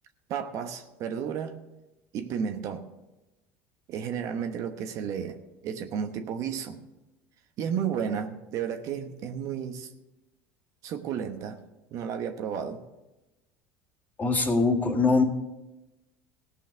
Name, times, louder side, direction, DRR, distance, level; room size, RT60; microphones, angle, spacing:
voice 1, 0.3-1.6 2.1-2.9 3.9-5.4 5.6-6.8 7.6-9.9 10.8-11.6 11.9-12.8, right 7 dB, 55° right, 6 dB, 1.1 m, -32 dB
voice 2, 14.2-15.2, left 3 dB, 25° left, 0 dB, 2.1 m, -22 dB
16.5 x 5.7 x 6.8 m, 1.0 s
supercardioid pair, 95°, 6 cm